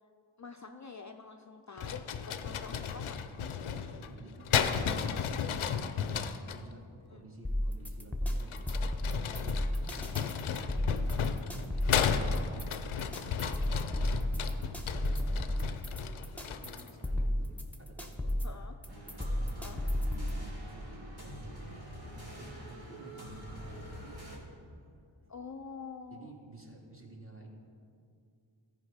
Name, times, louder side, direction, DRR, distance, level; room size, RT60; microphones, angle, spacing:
voice 1, 0.4-3.2 7.1-7.2 18.4-18.7 19.6-19.8 25.3-26.3, left 5 dB, 35° left, 5 dB, 0.5 m, -46 dB
sound 1, 1.8-6.6 8.4-17.0, left 7 dB, 80° left, 0.6 m, -34 dB
voice 2, 3.7-5.0 5.4-6.0 6.4-9.0 9.3-9.7 10.0-17.5 17.8-18.4 18.9-21.7 22.0-24.4 26.1-27.5, right 2 dB, 25° right, -1 dB, 2.1 m, -52 dB
sound 2, 7.4-20.4, left 1 dB, 5° left, 1.0 m, -33 dB
sound 3, 18.9-24.4, equal, 50° right, 2.6 m, -46 dB
13.5 x 5.0 x 5.0 m, 2.4 s
cardioid pair, 40°, 49 cm